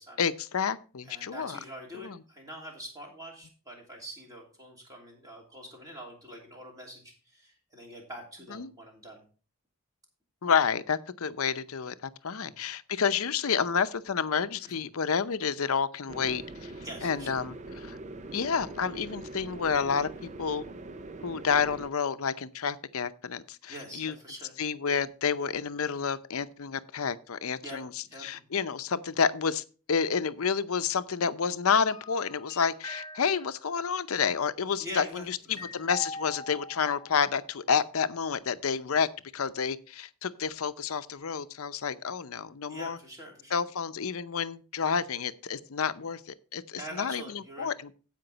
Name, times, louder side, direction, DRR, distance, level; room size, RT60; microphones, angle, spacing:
voice 1, 0.2-1.6 2.0-2.2 8.5-8.7 10.4-16.7 17.0-18.0 18.3-20.1 20.4-20.6 21.2-24.1 24.6-27.9 28.2-39.1 39.3-43.0 43.5-47.9, left 6 dB, 80° left, 0.6 m, -29 dB
voice 2, 1.0-9.2 12.4-12.6 14.6-14.8 16.8-17.4 23.7-24.6 27.6-28.3 34.8-35.7 42.7-43.6 46.8-47.7, equal, 15° right, 2.9 m, -44 dB
sound 1, 16.1-21.9, right 2 dB, 30° right, 0.5 m, -43 dB
sound 2, 31.9-33.8 35.6-37.3 37.6-37.7, left 2 dB, 15° left, 0.5 m, -43 dB
15.5 x 5.2 x 4.0 m
head